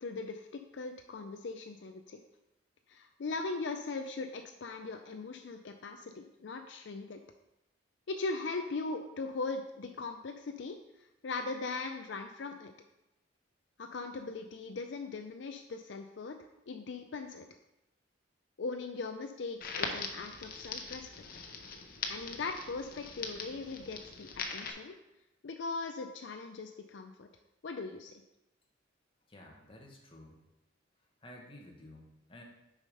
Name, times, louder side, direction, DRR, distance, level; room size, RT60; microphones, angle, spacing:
voice 1, 0.0-2.2 2.9-7.2 8.1-12.7 13.8-16.4 16.7-17.5 18.6-21.1 22.1-24.9 25.4-27.3 27.6-28.1, left 3 dB, 70° left, 6 dB, 0.5 m, -39 dB
Crackle, 19.6-24.7, left 4 dB, 50° left, 0.8 m, -41 dB
voice 2, 29.3-30.4 31.2-32.4, left 1 dB, 30° left, 0 dB, 1.2 m, -52 dB
6.5 x 5.0 x 5.4 m, 0.91 s
head